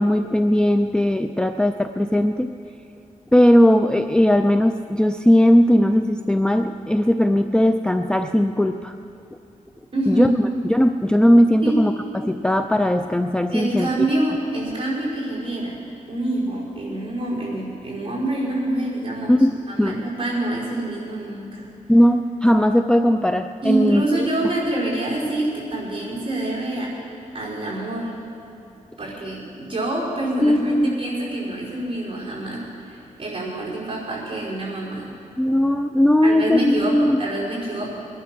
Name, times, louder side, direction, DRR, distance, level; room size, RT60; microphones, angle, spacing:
voice 1, 0.0-2.5 3.3-9.0 10.1-10.3 10.6-13.9 19.3-20.0 21.9-24.0 30.4-30.9 35.4-37.2, equal, 5° left, 7 dB, 0.4 m, -18 dB
voice 2, 9.9-10.4 11.6-11.8 13.5-15.8 16.1-21.7 23.6-26.9 27.3-28.1 29.0-35.1 36.2-37.9, right 1 dB, 40° right, -5 dB, 5.2 m, -26 dB
21.5 x 11.0 x 6.1 m, 2.7 s
wide cardioid pair, 125°, 14 cm